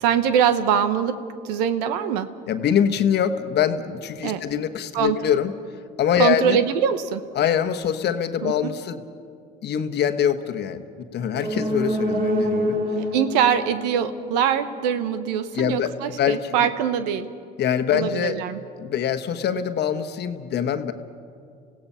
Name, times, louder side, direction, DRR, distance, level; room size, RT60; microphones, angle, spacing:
voice 1, 0.0-1.2 1.4-2.3 4.2-4.4 4.9-5.2 6.2-7.2 8.4-8.7 12.9-17.3 17.9-18.6, right 8 dB, 90° right, 11 dB, 1.0 m, -23 dB
voice 2, 2.5-5.5 6.0-6.6 7.3-9.0 9.6-10.8 11.1-12.8 15.5-15.9 16.2-16.7 17.6-18.4 18.8-20.9, left 9 dB, 55° left, 8 dB, 1.2 m, -24 dB
sound 1, 11.3-15.0 15.3-15.4, equal, 45° right, 3.0 m, -27 dB
28.5 x 16.5 x 5.7 m, 2.3 s
supercardioid pair, 85°, 20 cm